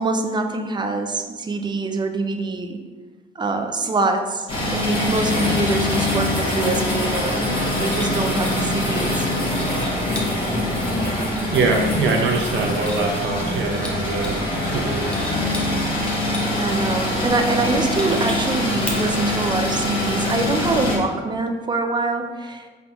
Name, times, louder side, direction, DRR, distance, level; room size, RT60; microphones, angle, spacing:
voice 1, 0.0-2.8 3.4-7.5 7.8-9.3 16.1-22.7, right 3 dB, 20° right, 5 dB, 0.4 m, -25 dB
sound 1, 4.5-21.0, left 1 dB, 25° left, 1.2 m, -23 dB
sound 2, 7.9-9.1 9.5-10.3 11.3-11.8 12.2-13.5 13.7-14.5 14.9-16.7 17.2-17.3 18.0-19.3, equal, 5° left, 0.8 m, -35 dB
voice 2, 11.5-15.1, right 4 dB, 70° right, 1 dB, 0.8 m, -23 dB
3.8 x 3.4 x 2.9 m, 1.4 s
cardioid pair, 90°, 20 cm